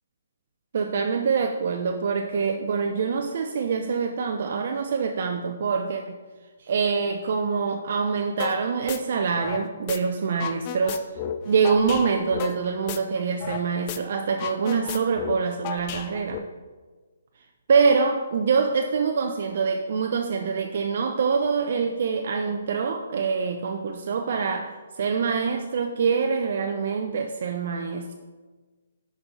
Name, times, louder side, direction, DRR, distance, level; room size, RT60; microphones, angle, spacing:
voice 1, 0.7-6.2 6.6-11.0 11.4-16.4 17.7-28.1, right 5 dB, 55° right, 4 dB, 0.5 m, -25 dB
sound 1, 8.4-8.6 8.9-10.0 10.3-13.6 13.9-14.0 14.3-16.4, left 8 dB, 30° left, 0.4 m, -33 dB
6.1 x 5.2 x 3.8 m, 1.4 s
hypercardioid pair, 150°, 0 cm